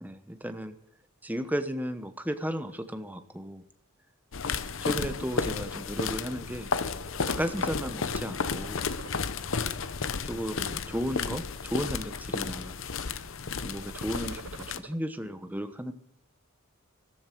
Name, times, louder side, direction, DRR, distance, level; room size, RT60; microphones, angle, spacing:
voice 1, 0.0-0.8 1.2-3.6 4.8-6.7 7.2-8.9 10.2-12.8 13.6-15.9, equal, 10° right, 8 dB, 1.1 m, -34 dB
sound 1, 4.3-14.8, left 5 dB, 60° left, 0.8 m, -33 dB
sound 2, 4.8-5.8 6.3-6.5 6.8-8.1 8.4-9.6 10.2-10.7 11.2-12.0 12.3-12.8 13.7-14.9, right 5 dB, 70° right, 0.8 m, -48 dB
14.0 x 13.5 x 6.1 m, 0.73 s
head